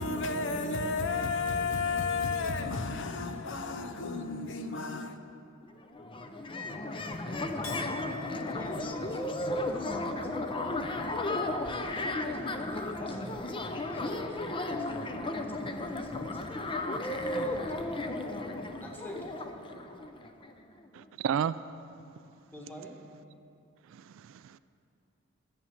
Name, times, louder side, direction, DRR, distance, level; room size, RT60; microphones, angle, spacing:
voice 1, 0.0-5.2, left 4 dB, 60° left, 0.7 m, -32 dB
sound 1, 5.6-5.7 5.9-20.5, left 2 dB, 25° left, 0.6 m, -34 dB
Chink clink, 7.6-14.2 14.6-15.2, left 4 dB, 85° left, 1.2 m, -48 dB
voice 2, 8.4-18.2 18.8-19.3 22.5-22.9, equal, 10° left, 1.5 m, -48 dB
voice 3, 20.9-21.6 23.9-24.6, right 8 dB, 65° right, 0.3 m, -32 dB
11.0 x 7.5 x 7.2 m
head